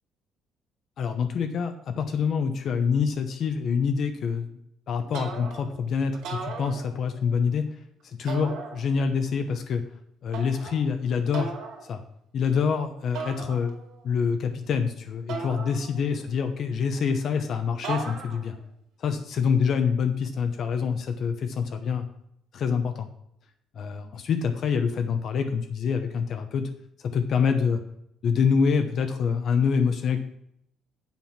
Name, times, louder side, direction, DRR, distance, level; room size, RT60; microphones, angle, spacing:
voice 1, 1.0-4.6 4.9-7.6 8.0-9.8 10.2-11.5 11.8-12.0 12.3-13.8 14.0-18.5 19.0-22.1 22.5-23.1 23.7-26.7 27.0-27.8 28.2-30.2, left 6 dB, 50° left, 7 dB, 0.9 m, -26 dB
sound 1, 5.1-5.8 6.1-7.3 8.3-9.2 10.3-10.8 11.3-11.8 13.1-14.0 15.3-16.3 17.8-18.6, right 5 dB, 85° right, 2.4 m, -37 dB
7.8 x 7.3 x 5.8 m, 0.73 s
cardioid pair, 145°, 0 cm